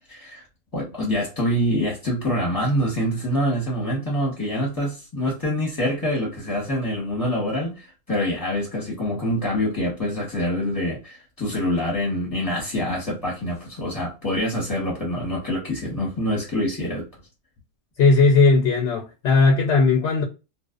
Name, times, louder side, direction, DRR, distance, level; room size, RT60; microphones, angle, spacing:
voice 1, 0.1-0.4 0.7-17.1, equal, 20° left, 0.9 m, -25 dB
voice 2, 18.0-20.2, left 3 dB, 65° left, 0.8 m, -17 dB
2.5 x 2.2 x 2.3 m
omnidirectional pair, 1.3 m